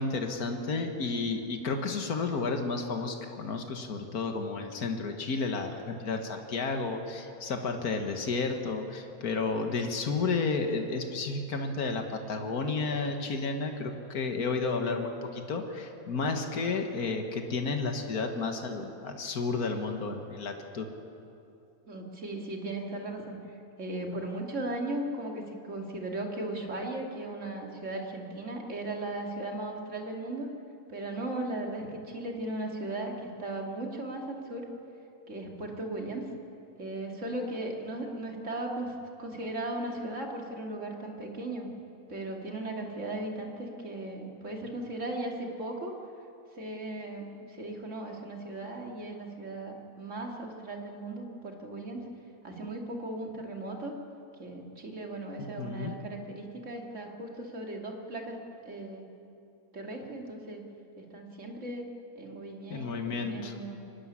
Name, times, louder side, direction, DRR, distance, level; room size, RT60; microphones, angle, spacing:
voice 1, 0.0-20.9 55.4-55.9 62.7-63.5, left 4 dB, 85° left, 4 dB, 2.0 m, -32 dB
voice 2, 21.8-30.5 30.9-34.7 35.3-36.2 36.8-38.9 39.2-41.7 42.1-45.9 46.5-52.0 52.4-53.9 54.4-58.4 58.6-59.0 59.7-60.6 61.0-61.9 62.1-63.8, right 2 dB, 55° right, 1 dB, 2.7 m, -37 dB
24.0 x 13.0 x 9.9 m, 2.7 s
omnidirectional pair, 1.6 m